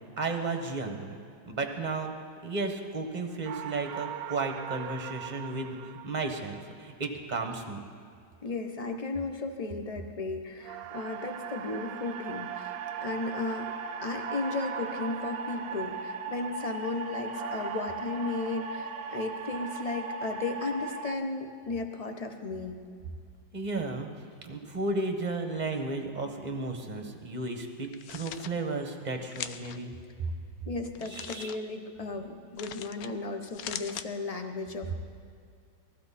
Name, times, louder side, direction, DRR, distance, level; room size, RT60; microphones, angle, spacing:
voice 1, 0.2-1.2 1.5-2.1 2.4-7.8 23.5-24.1 24.4-29.9 30.2-30.3 31.0-31.6, right 3 dB, 25° right, 4 dB, 1.2 m, -33 dB
sound 1, 3.4-6.8 10.6-16.7 17.3-19.2 19.5-19.8, right 11 dB, 75° right, 0.9 m, -42 dB
voice 2, 8.4-13.7 14.0-22.8 30.7-34.9, left 3 dB, 40° left, 5 dB, 0.5 m, -35 dB
sound 2, 10.9-21.1, right 3 dB, 50° right, 1.1 m, -38 dB
sound 3, 27.8-28.5 29.3-29.8 30.9-31.6 32.6-33.1 33.4-34.1, left 10 dB, 75° left, 0.8 m, -40 dB
20.0 x 15.0 x 4.2 m, 2.3 s
omnidirectional pair, 2.1 m